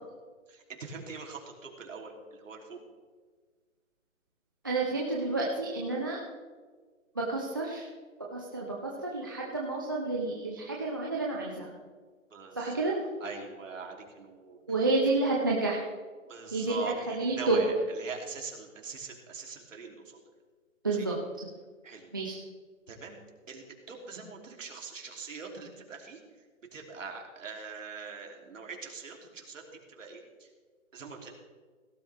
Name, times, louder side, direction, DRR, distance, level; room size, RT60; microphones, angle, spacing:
voice 1, 0.5-2.8 12.3-14.6 16.2-20.0 20.9-21.1 21.8-22.2 22.9-23.2 23.5-26.2 26.7-30.5 30.9-31.3, right 5 dB, 70° right, 1 dB, 3.2 m, -42 dB
voice 2, 4.6-6.2 7.2-7.9 8.3-11.7 12.6-13.0 14.7-15.8 16.5-17.6 20.8-21.5 22.1-22.4, right 3 dB, 15° right, -3 dB, 0.6 m, -30 dB
17.5 x 12.5 x 3.5 m, 1.5 s
hypercardioid pair, 170°, 40 cm